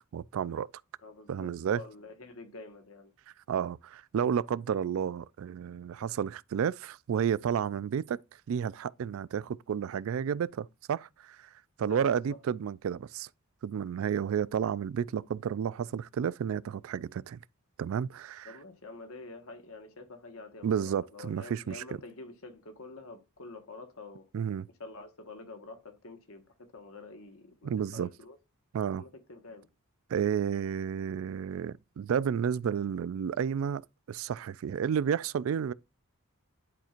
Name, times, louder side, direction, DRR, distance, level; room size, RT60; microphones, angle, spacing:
voice 1, 0.1-0.7 1.3-1.8 3.5-8.2 8.5-11.5 11.8-13.3 13.6-17.4 17.8-18.5 20.6-21.8 24.3-24.7 27.6-28.1 28.7-29.0 30.1-33.8 34.1-35.7, right 8 dB, 65° right, 0.3 m, -31 dB
voice 2, 1.0-3.1 11.8-12.4 18.4-24.3 24.8-28.4 29.0-29.7, left 3 dB, 65° left, 1.3 m, -47 dB
10.5 x 4.4 x 2.4 m
head